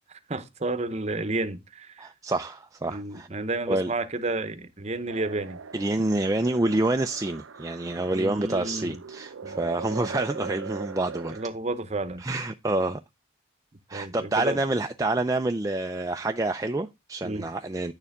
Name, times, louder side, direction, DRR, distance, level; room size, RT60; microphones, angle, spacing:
voice 1, 0.3-2.1 2.9-5.6 8.1-9.0 9.4-9.7 11.3-12.2 13.9-14.6 17.2-17.5, right 2 dB, 35° right, 0.9 m, -31 dB
voice 2, 2.0-3.3 3.7-3.9 5.7-11.3 12.2-13.0 13.9-17.9, right 2 dB, 15° right, 0.4 m, -27 dB
sound 1, 5.1-11.5, right 5 dB, 80° right, 0.6 m, -40 dB
9.8 x 6.8 x 3.6 m
head